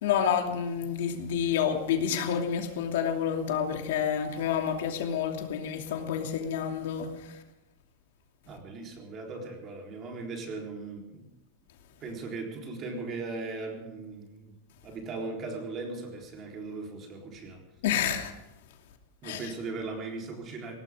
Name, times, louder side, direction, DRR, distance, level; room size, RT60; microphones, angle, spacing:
voice 1, 0.0-7.4 17.8-18.3 19.2-19.5, left 8 dB, 80° left, 3 dB, 2.7 m, -29 dB
voice 2, 8.5-11.3 12.0-14.5 14.8-17.6 19.2-20.8, right 3 dB, 30° right, 1 dB, 4.0 m, -38 dB
21.0 x 18.5 x 3.7 m, 0.94 s
supercardioid pair, 160°, 0 cm